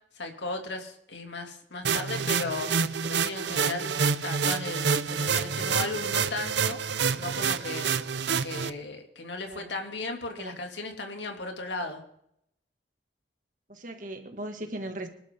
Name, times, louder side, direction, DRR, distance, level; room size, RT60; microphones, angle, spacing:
voice 1, 0.1-2.7 3.0-3.9 4.2-6.8 7.1-7.9 8.4-12.0, left 3 dB, 80° left, 3 dB, 2.9 m, -36 dB
sound 1, 1.8-8.7, right 6 dB, 80° right, 0.7 m, -28 dB
voice 2, 13.7-15.1, right 1 dB, 45° right, 5 dB, 2.3 m, -38 dB
26.0 x 12.0 x 3.9 m, 0.73 s
head